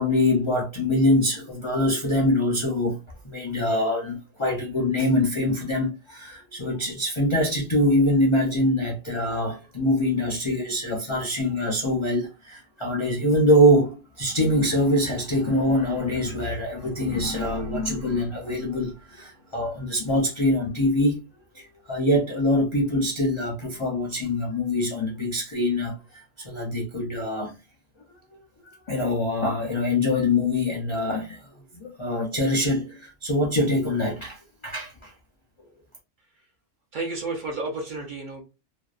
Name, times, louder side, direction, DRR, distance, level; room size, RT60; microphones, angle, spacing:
voice 1, 0.0-3.0 3.2-21.2 21.5-27.5 28.9-31.5 31.7-35.1, left 1 dB, 55° left, 0.3 m, -24 dB
voice 2, 36.9-38.4, right 3 dB, 55° right, 0.6 m, -31 dB
2.6 x 2.0 x 2.3 m
omnidirectional pair, 1.2 m